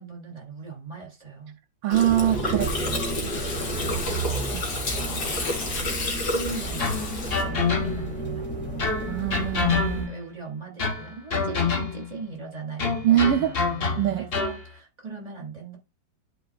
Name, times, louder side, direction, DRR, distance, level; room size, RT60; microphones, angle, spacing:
voice 1, 0.0-1.6 3.7-5.5 5.8-7.1 7.4-8.9 9.9-15.8, right 4 dB, 20° right, 3.1 m, -39 dB
voice 2, 1.8-3.0 4.5-4.6 9.1-10.1 13.0-13.5 14.0-14.2, right 12 dB, 80° right, 1.3 m, -23 dB
Gurgling, 1.9-7.4, left 2 dB, 55° left, 2.2 m, -30 dB
sound 1, 2.1-10.1, right 3 dB, 5° left, 2.5 m, -33 dB
sound 2, 6.8-8.2 8.8-10.3 10.8-12.2 12.8-14.6, left 5 dB, 40° left, 1.0 m, -27 dB
12.0 x 4.6 x 2.5 m
omnidirectional pair, 2.1 m